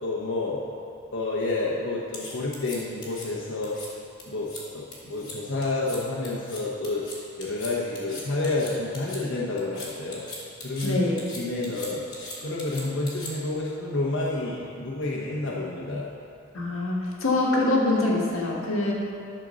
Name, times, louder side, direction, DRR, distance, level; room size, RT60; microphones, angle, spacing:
voice 1, 0.0-0.6 1.1-3.8 4.3-7.0 7.4-10.3 10.6-11.0 11.3-16.1, left 2 dB, 65° left, -5 dB, 1.1 m, -29 dB
sound 1, 2.1-3.2 3.6-3.9 4.2-4.6 4.9-5.3 5.6-6.0 6.2-9.2 9.6-10.9 11.2-13.6, left 2 dB, 20° left, 1.8 m, -40 dB
voice 2, 10.8-11.2 16.5-18.9, left 2 dB, 85° left, -2 dB, 1.6 m, -24 dB
12.0 x 4.5 x 6.3 m, 2.6 s
head